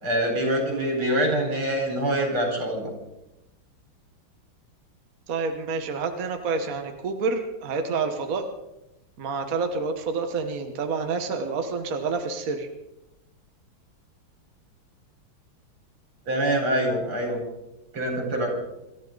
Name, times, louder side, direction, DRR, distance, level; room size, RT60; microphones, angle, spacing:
voice 1, 0.0-2.9 16.3-17.4 17.9-18.6, right 1 dB, 85° right, 1 dB, 5.2 m, -25 dB
voice 2, 5.3-8.5 9.2-12.7, right 4 dB, 45° right, 5 dB, 1.6 m, -28 dB
26.0 x 13.5 x 3.9 m, 0.91 s
omnidirectional pair, 2.3 m